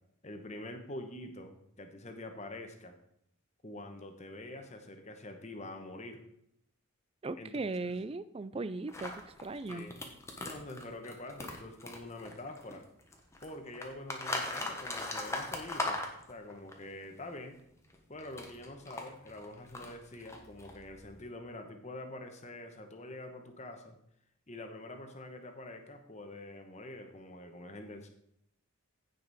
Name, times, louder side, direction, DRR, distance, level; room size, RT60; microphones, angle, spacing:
voice 1, 0.2-3.0 3.6-6.2 7.4-7.5 7.8-7.9 9.7-10.0 10.4-12.8 13.4-16.0 16.3-17.6 18.1-24.0 24.5-28.1, left 1 dB, 30° left, 6 dB, 1.1 m, -46 dB
voice 2, 7.2-9.9, right 3 dB, 25° right, 14 dB, 0.3 m, -38 dB
sound 1, 8.9-12.8 13.1-16.7 17.9-21.2, left 2 dB, 15° left, 1.1 m, -39 dB
15.5 x 5.3 x 4.1 m, 0.74 s
head